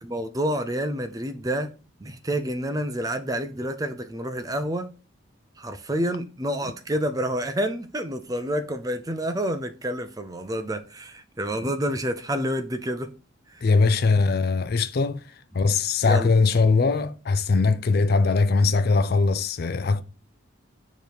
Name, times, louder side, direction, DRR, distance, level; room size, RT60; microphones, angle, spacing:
voice 1, 0.0-1.7 2.0-4.9 5.6-13.1 13.5-13.7 16.0-16.3, equal, 15° right, 0.5 m, -28 dB
voice 2, 13.6-15.2 15.5-20.0, left 4 dB, 50° left, 0.4 m, -21 dB
6.8 x 3.1 x 5.1 m
head